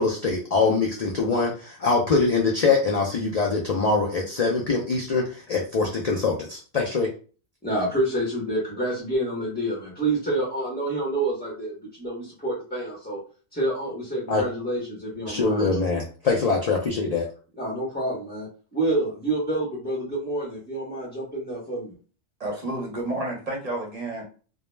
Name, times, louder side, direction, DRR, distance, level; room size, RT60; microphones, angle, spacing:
voice 1, 0.0-7.1 14.3-14.4 15.3-17.3, left 4 dB, 55° left, -1 dB, 0.4 m, -23 dB
voice 2, 7.6-13.2 13.5-15.9 17.6-21.9, right 1 dB, 10° left, -5 dB, 0.7 m, -28 dB
voice 3, 22.4-24.2, right 2 dB, 40° right, -1 dB, 0.7 m, -30 dB
2.2 x 2.0 x 3.1 m, 0.38 s
omnidirectional pair, 1.2 m